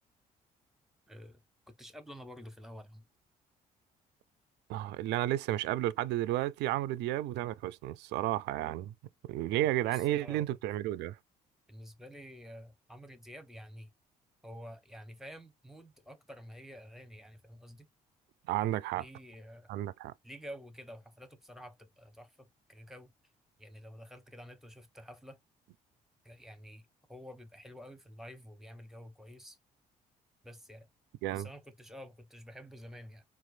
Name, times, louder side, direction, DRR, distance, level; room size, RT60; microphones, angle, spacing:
voice 1, 1.1-1.4 1.7-3.0 9.8-10.6 11.7-13.9 14.4-17.9 19.0-19.7 20.2-22.3 22.7-23.1 23.6-25.4 26.2-29.6 30.4-30.9 31.3-33.2, equal, ahead, 1.0 m, -49 dB
voice 2, 4.7-8.9 9.2-11.2 18.5-19.0 19.7-20.1 31.2-31.5, right 14 dB, 60° right, 0.4 m, -32 dB
4.3 x 2.4 x 2.4 m
figure-of-eight pair, 45°, 20 cm